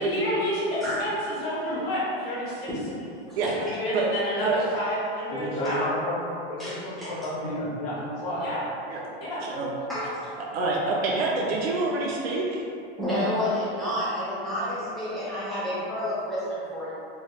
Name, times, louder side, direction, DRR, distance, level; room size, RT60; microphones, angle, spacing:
voice 1, 0.0-2.7 3.6-5.9 8.4-8.6 9.2-9.4, equal, 65° left, -8 dB, 1.4 m, -30 dB
voice 2, 2.9-3.4 6.6-6.7 7.0-7.1 9.9-10.1 13.0-16.9, left 1 dB, ahead, -13 dB, 0.8 m, -29 dB
voice 3, 5.3-6.2 6.5-8.4, equal, 40° left, -9 dB, 1.2 m, -31 dB
voice 4, 10.5-12.6 14.6-14.7, right 3 dB, 75° right, -4 dB, 0.6 m, -26 dB
3.5 x 3.1 x 2.3 m, 2.5 s
supercardioid pair, 170°, 31 cm